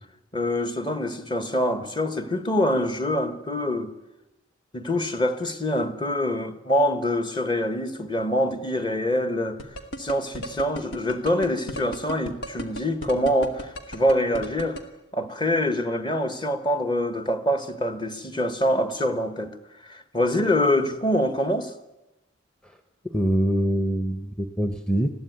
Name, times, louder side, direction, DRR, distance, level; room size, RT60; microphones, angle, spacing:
voice 1, 0.3-3.9 4.7-9.6 10.0-14.8 15.1-19.6 19.8-21.7, left 1 dB, 25° left, 1.4 m, -25 dB
sound 1, 9.6-14.8, equal, 80° left, 2.4 m, -34 dB
voice 2, 23.0-25.1, right 1 dB, 5° left, 0.8 m, -24 dB
20.5 x 15.0 x 9.5 m
head